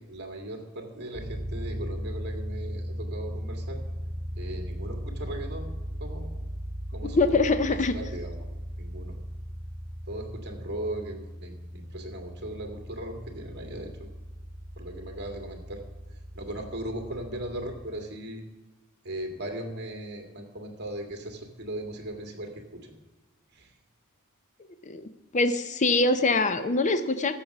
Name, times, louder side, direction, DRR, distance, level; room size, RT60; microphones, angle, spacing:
voice 1, 0.0-3.8 4.4-5.7 6.0-6.3 6.9-7.3 7.7-8.5 8.8-9.2 10.1-13.9 14.8-15.8 16.3-18.4 19.0-22.9 23.5-23.7, right 1 dB, 50° right, 3 dB, 2.1 m, -38 dB
sound 1, 1.1-17.9, equal, 35° right, 1.8 m, -38 dB
voice 2, 7.0-8.0 24.9-27.4, left 3 dB, 35° left, 11 dB, 0.5 m, -24 dB
14.5 x 6.8 x 6.0 m, 1.1 s
head